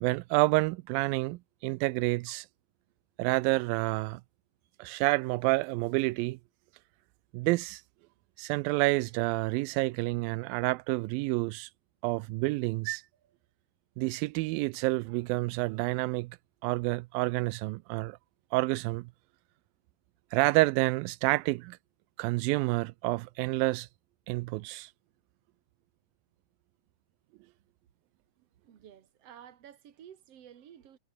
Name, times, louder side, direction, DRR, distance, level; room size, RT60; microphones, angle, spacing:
voice 1, 0.0-2.5 3.2-4.2 4.8-6.4 7.3-7.8 8.4-11.7 12.0-13.0 14.0-16.4 16.6-18.2 18.5-19.1 20.3-21.8 22.2-23.9 24.3-24.9, right 22 dB, 85° right, 2.3 m, -29 dB
voice 2, 28.6-31.0, right 9 dB, 50° right, 2.7 m, -52 dB
omnidirectional pair, 4.0 m